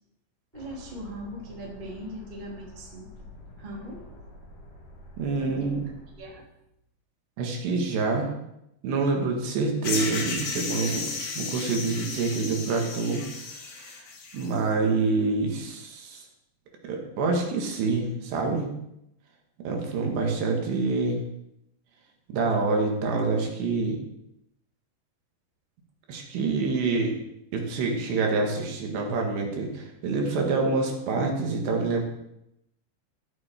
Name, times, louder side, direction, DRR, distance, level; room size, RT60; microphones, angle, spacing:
sound 1, 0.5-6.1, left 1 dB, 45° left, 5.0 m, -48 dB
voice 1, 0.5-3.1 3.6-4.1 5.4-5.7 6.2-6.4, equal, 15° right, -2 dB, 2.0 m, -40 dB
voice 2, 5.2-5.9 7.4-8.3 8.8-13.2 13.7-14.0 14.3-16.2 16.8-18.7 19.6-21.2 22.3-24.0 26.1-27.1 27.5-32.0, right 3 dB, 70° right, 1 dB, 4.0 m, -26 dB
sound 2, 9.8-14.6, left 4 dB, 70° left, 4.1 m, -34 dB
13.5 x 12.5 x 4.5 m, 0.82 s
omnidirectional pair, 5.2 m